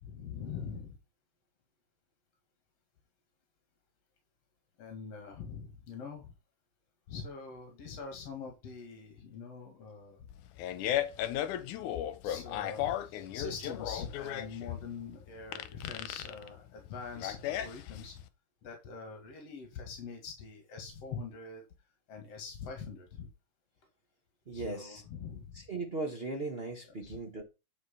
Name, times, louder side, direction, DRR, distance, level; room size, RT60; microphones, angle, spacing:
voice 1, 0.0-1.0 4.8-6.3 7.1-10.3 12.2-18.2 18.6-21.6 22.1-23.3 24.5-25.6 26.9-27.2, left 5 dB, 55° left, 2.8 m, -44 dB
Fart, 10.3-18.3, left 11 dB, 80° left, 2.3 m, -36 dB
voice 2, 24.5-25.0 25.5-27.4, right 3 dB, 65° right, 0.5 m, -38 dB
9.8 x 5.1 x 5.5 m
omnidirectional pair, 3.5 m